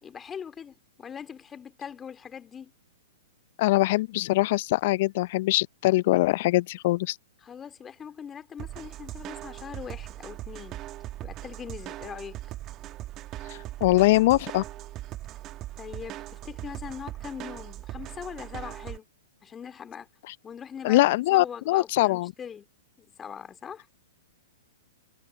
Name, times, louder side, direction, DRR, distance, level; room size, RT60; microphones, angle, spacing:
voice 1, 0.0-2.7 7.4-10.8 11.2-12.4 15.8-19.1 19.4-20.1 20.4-22.7 23.0-23.9, left 7 dB, 20° left, 2.8 m, -41 dB
voice 2, 3.6-7.2 13.5-14.6 20.8-22.3, left 18 dB, 50° left, 0.6 m, -22 dB
sound 1, 8.6-19.0, right 15 dB, 30° right, 1.9 m, -40 dB
figure-of-eight pair, 110°, 0 cm